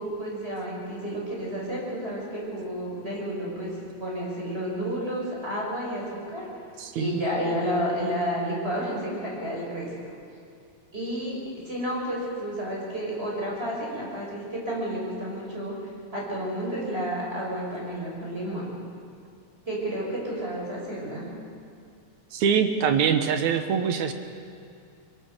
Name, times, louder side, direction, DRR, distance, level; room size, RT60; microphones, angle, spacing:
voice 1, 0.0-3.7 4.0-6.4 7.0-10.2 10.9-11.4 11.6-15.7 16.1-18.7 19.7-21.3, equal, 20° right, -3 dB, 6.2 m, -31 dB
voice 2, 6.8-7.2 22.3-24.1, right 7 dB, 75° right, 7 dB, 2.5 m, -24 dB
23.5 x 23.0 x 6.7 m, 2.3 s
omnidirectional pair, 3.5 m